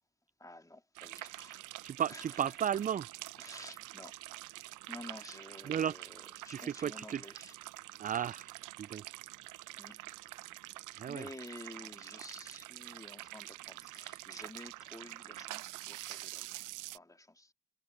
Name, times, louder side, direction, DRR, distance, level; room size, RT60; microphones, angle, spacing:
voice 1, 0.4-1.7 2.1-2.8 3.4-4.1 4.9-7.6 9.8-10.0 10.9-17.5, left 1 dB, 10° left, 2.6 m, -51 dB
sound 1, 1.0-17.0, right 17 dB, 60° right, 1.0 m, -46 dB
voice 2, 1.8-3.1 5.7-5.9 6.5-7.2 8.0-9.0 11.0-11.3, right 9 dB, 25° right, 0.4 m, -34 dB
figure-of-eight pair, 50°, 35 cm